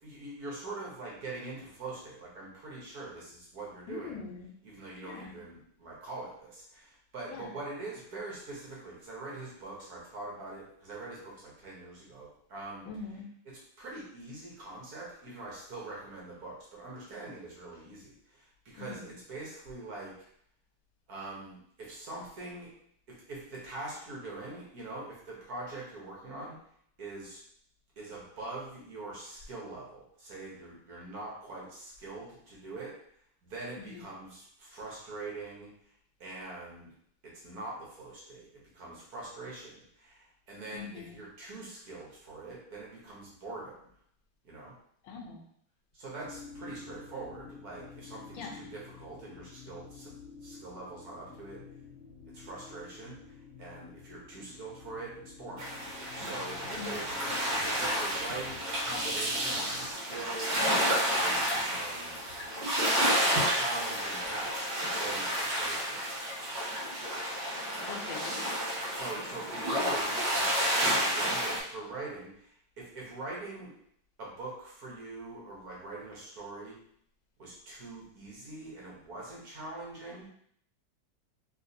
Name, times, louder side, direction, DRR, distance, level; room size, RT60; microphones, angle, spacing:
voice 1, 0.0-4.3 4.6-12.8 13.4-20.1 21.1-22.7 23.1-26.6 27.0-27.4 28.0-32.9 33.4-35.7 36.2-36.9 37.4-38.5 38.7-43.8 44.4-44.7 45.9-50.1 50.4-51.6 52.3-55.8 56.1-57.0 57.5-62.2 63.5-66.0 68.9-73.7 74.2-76.7 77.4-80.3, right 2 dB, 55° right, -4 dB, 1.4 m, -43 dB
voice 2, 3.9-4.5 5.0-5.4 7.3-7.5 12.9-13.2 18.8-19.1 33.8-34.1 40.7-41.2 45.0-45.4 48.3-48.6 56.8-57.1 67.9-68.4, left 5 dB, 80° left, 2 dB, 1.3 m, -42 dB
sound 1, 46.2-59.9, left 5 dB, 60° left, 1.0 m, -50 dB
sound 2, 55.6-71.6, equal, 75° right, 1.7 m, -30 dB
3.2 x 3.1 x 2.7 m, 0.67 s
omnidirectional pair, 2.1 m